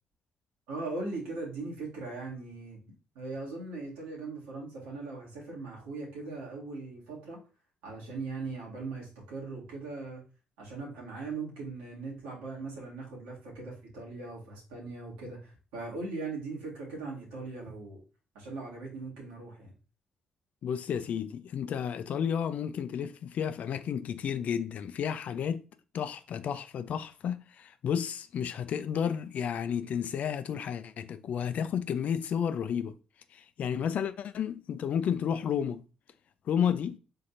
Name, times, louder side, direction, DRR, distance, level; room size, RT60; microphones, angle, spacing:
voice 1, 0.7-2.8 3.2-7.4 7.8-10.2 10.6-18.0 18.4-19.7, right 3 dB, 85° right, 1.8 m, -39 dB
voice 2, 20.6-25.6 25.9-32.9 33.3-35.8 36.5-37.0, left 8 dB, 65° left, 0.4 m, -32 dB
4.4 x 3.7 x 2.6 m
hypercardioid pair, 50°, 3 cm